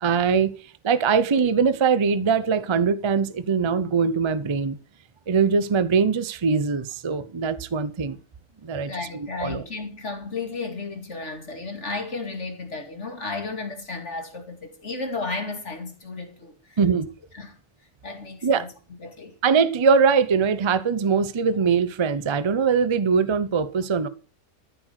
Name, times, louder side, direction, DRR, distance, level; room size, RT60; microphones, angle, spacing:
voice 1, 0.0-4.8 5.3-8.2 8.6-9.6 16.8-17.1 18.4-18.6 19.4-24.1, right 5 dB, 30° right, 0.5 m, -22 dB
voice 2, 8.7-16.8 17.3-17.6 18.0-18.7 19.0-19.3, left 3 dB, 50° left, 2.7 m, -33 dB
14.0 x 7.8 x 6.4 m
omnidirectional pair, 1.6 m